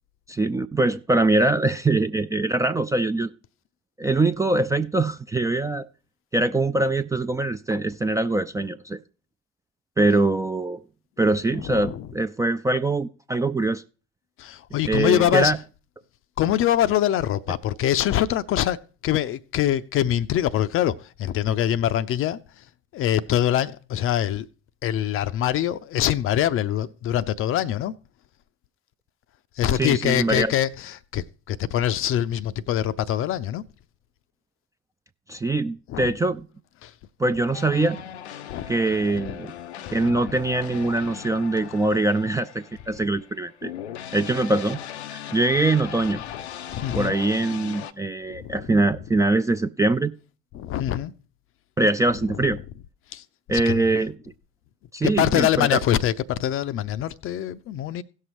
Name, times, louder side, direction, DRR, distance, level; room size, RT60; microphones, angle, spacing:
voice 1, 0.3-3.3 4.0-5.9 6.3-9.0 10.0-10.8 11.2-13.8 14.9-15.6 29.7-30.5 35.3-36.4 37.2-38.0 38.7-39.5 39.9-43.7 44.1-44.8 45.1-46.2 46.9-50.1 51.8-52.6 53.5-54.1 54.9-55.8, right 2 dB, 10° right, 0.4 m, -23 dB
voice 2, 11.6-12.1 14.4-15.5 16.4-22.6 22.9-24.5 24.8-27.9 29.6-33.6 35.9-36.1 36.8-36.9 38.5-38.7 39.2-39.3 39.9-40.1 46.7-47.2 48.3-48.7 50.5-51.1 52.3-52.5 53.1-53.8 55.0-58.0, left 11 dB, 40° left, 0.5 m, -24 dB
sound 1, 37.5-47.9, left 10 dB, 80° left, 0.6 m, -38 dB
17.0 x 6.5 x 3.0 m
figure-of-eight pair, 60°, 33 cm